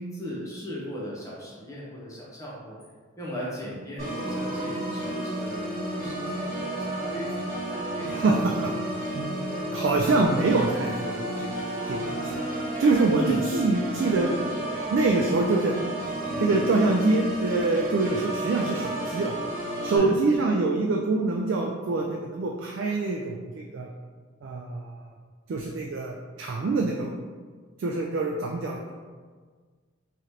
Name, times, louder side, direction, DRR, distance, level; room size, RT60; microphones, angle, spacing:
voice 1, 0.0-2.8 3.2-8.1 13.1-13.4 16.3-16.6 19.8-20.1, equal, 15° left, -6 dB, 0.8 m, -38 dB
Organ, 4.0-20.0, right 1 dB, 40° right, 1.4 m, -32 dB
voice 2, 8.1-8.7 9.0-12.3 12.8-14.3 14.9-15.7 16.4-19.3 19.8-23.9 24.4-24.9 25.5-27.1 27.8-28.9, right 3 dB, 60° right, 0 dB, 0.3 m, -25 dB
3.7 x 3.2 x 2.8 m, 1.5 s
head